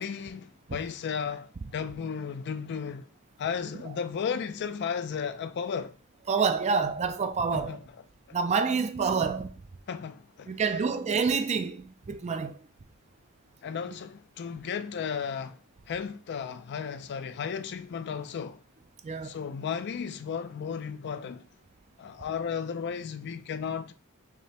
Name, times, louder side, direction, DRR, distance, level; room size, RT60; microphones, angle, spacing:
voice 1, 0.0-3.1 3.4-6.0 7.5-7.8 9.9-10.5 13.6-15.6 15.9-18.6 19.2-21.4 22.0-23.9, left 6 dB, 50° left, 0.4 m, -34 dB
voice 2, 6.3-7.8 8.3-9.5 10.5-12.6 19.0-19.3, right 5 dB, 30° right, 0.4 m, -27 dB
4.9 x 3.1 x 2.9 m
head